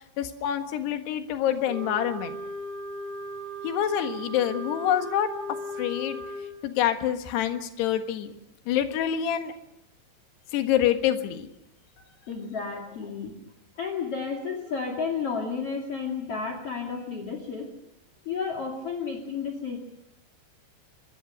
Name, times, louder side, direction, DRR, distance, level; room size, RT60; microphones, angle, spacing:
voice 1, 0.2-2.4 3.6-5.3 5.8-6.2 6.6-8.3 8.7-9.5 10.5-11.5, left 10 dB, 70° left, 7 dB, 3.5 m, -26 dB
Wind instrument woodwind instrument, 1.6-6.5, right 1 dB, 25° right, 3.7 m, -37 dB
voice 2, 12.0-13.3 13.8-17.7 18.2-19.8, left 5 dB, 40° left, 2 dB, 2.8 m, -32 dB
25.0 x 22.0 x 6.4 m, 0.82 s
omnidirectional pair, 5.3 m